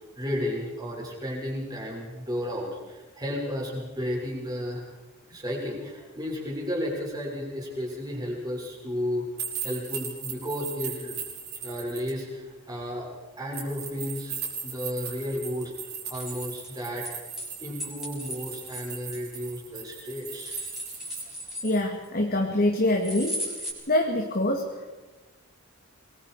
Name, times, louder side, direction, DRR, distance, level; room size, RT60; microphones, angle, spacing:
voice 1, 0.2-4.9 5.3-9.3 9.6-11.2 11.6-13.1 13.4-14.3 14.6-15.7 16.1-17.1 17.6-20.6, left 1 dB, 20° right, -3 dB, 6.8 m, -33 dB
sound 1, 9.4-12.1 13.5-21.2, right 7 dB, 50° right, 6.5 m, -38 dB
sound 2, 16.1-17.5 17.8-19.8 20.2-22.1 23.0-23.7, equal, ahead, 6.5 m, -36 dB
voice 2, 21.6-23.5 23.9-24.9, left 1 dB, 45° left, 1 dB, 2.4 m, -25 dB
26.5 x 22.5 x 5.0 m, 1.2 s
head